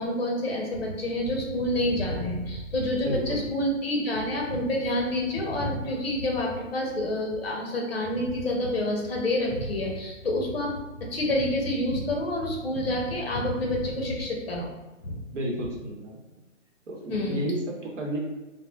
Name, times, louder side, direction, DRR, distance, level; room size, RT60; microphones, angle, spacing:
voice 1, 0.0-14.7 15.0-15.2 17.1-17.4, left 1 dB, 50° left, 0 dB, 0.7 m, -28 dB
voice 2, 3.0-3.4 15.3-16.4 16.9-18.2, right 1 dB, 65° right, -1 dB, 0.8 m, -32 dB
3.3 x 2.0 x 2.3 m, 1.1 s
hypercardioid pair, 170°, 39 cm